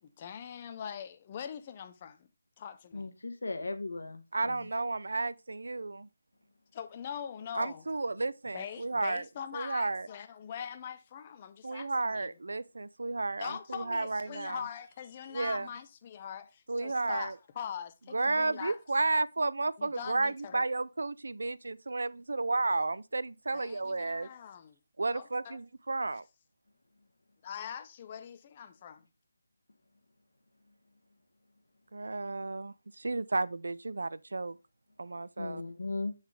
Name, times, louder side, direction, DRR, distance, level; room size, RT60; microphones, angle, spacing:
voice 1, 0.0-2.3 2.6-3.1 6.7-7.8 8.2-8.3 8.5-12.4 13.4-18.8 19.8-20.7 23.5-24.8 25.1-25.6 27.4-29.0, left 8 dB, 25° left, 0.5 m, -42 dB
voice 2, 2.9-4.7 35.4-36.1, left 3 dB, 80° left, 1.1 m, -37 dB
voice 3, 4.3-6.1 7.5-9.2 9.5-10.1 11.6-14.6 15.3-15.7 16.7-17.3 18.1-24.3 25.0-26.2 31.9-34.6 35.0-35.6, right 3 dB, 80° right, 0.3 m, -32 dB
7.0 x 4.0 x 3.3 m
figure-of-eight pair, 165°, 0 cm